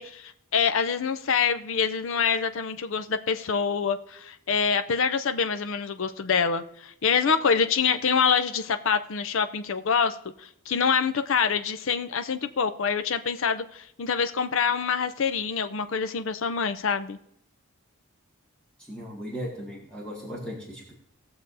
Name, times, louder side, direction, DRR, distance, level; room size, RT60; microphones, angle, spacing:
voice 1, 0.0-17.2, left 6 dB, 65° left, 10 dB, 0.5 m, -26 dB
voice 2, 18.9-20.9, equal, 5° left, -6 dB, 1.8 m, -37 dB
19.0 x 6.9 x 2.7 m, 0.73 s
head